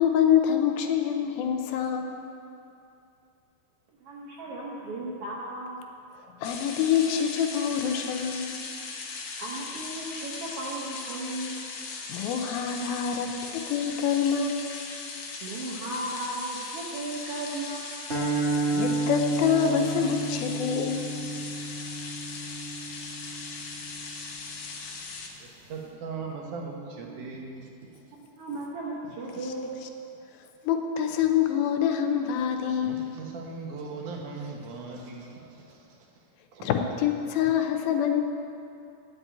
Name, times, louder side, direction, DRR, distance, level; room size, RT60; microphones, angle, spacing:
voice 1, 0.0-2.2 6.4-8.5 12.1-14.7 18.5-21.1 30.6-33.0 36.6-38.2, left 8 dB, 80° left, 5 dB, 2.5 m, -26 dB
voice 2, 4.0-5.8 9.4-11.6 15.4-17.9 27.0-27.2 28.4-29.9, right 2 dB, 90° right, -3 dB, 1.2 m, -35 dB
sound 1, 6.4-25.3, left 4 dB, 60° left, 2.1 m, -39 dB
sound 2, 18.1-24.4, right 2 dB, 40° right, 1.0 m, -31 dB
voice 3, 25.4-27.7 32.8-36.2 36.5-36.7, right 4 dB, 65° right, 0 dB, 2.5 m, -39 dB
9.8 x 8.2 x 8.3 m, 2.6 s
omnidirectional pair, 4.3 m